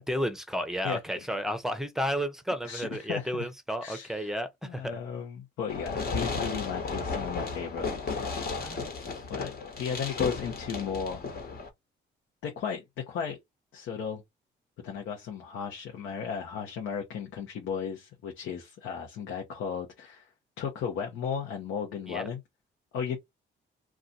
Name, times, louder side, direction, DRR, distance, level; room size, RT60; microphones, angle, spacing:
voice 1, 0.0-5.0 8.6-8.9 22.1-22.3, equal, ahead, 0.7 m, -32 dB
voice 2, 2.6-3.5 3.8-4.4 4.6-7.9 8.2-8.7 9.3-11.2 12.4-13.4 13.7-14.2 14.8-20.3 20.6-22.4 22.9-23.2, left 7 dB, 85° left, 0.9 m, -35 dB
Fireworks, 5.7-11.7, left 4 dB, 50° left, 1.3 m, -34 dB
2.4 x 2.4 x 4.0 m
cardioid pair, 90°, 20 cm